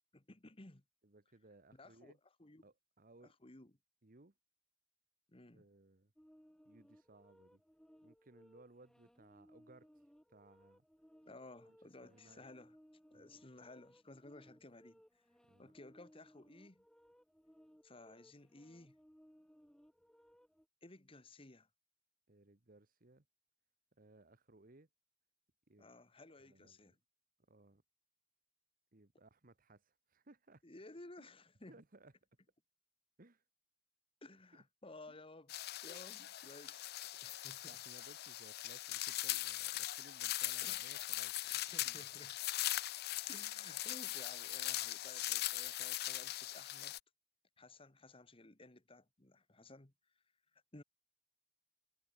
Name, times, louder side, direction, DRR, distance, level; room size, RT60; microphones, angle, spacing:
voice 1, 0.1-0.8 1.7-2.1 2.4-2.6 3.2-3.7 5.3-5.6 11.2-12.8 13.1-15.2 15.6-16.8 17.8-19.0 20.8-21.7 25.8-27.0 30.6-31.8 34.2-35.5 35.8-36.8 37.2-37.8 40.6-40.8 41.5-42.4 43.3-47.0 47.6-50.2 50.5-50.8, left 2 dB, 30° left, 1.5 m, -56 dB
voice 2, 1.0-2.2 2.6-3.3 4.0-4.3 5.5-6.1 6.6-7.6 8.0-9.9 10.3-10.8 11.6-11.8 12.0-12.4 13.1-13.4 15.5-15.7 22.3-23.2 24.0-24.9 25.7-25.9 26.4-27.0 27.5-27.8 28.9-30.6 31.2-31.3 31.7-32.1 33.2-33.4 35.1-35.2 35.9-36.3 37.6-41.5 41.8-42.1, right 2 dB, 45° right, 1.4 m, -63 dB
sound 1, 6.2-20.7, equal, 5° left, 2.1 m, -65 dB
sound 2, 35.5-47.0, left 15 dB, 55° left, 0.5 m, -40 dB
head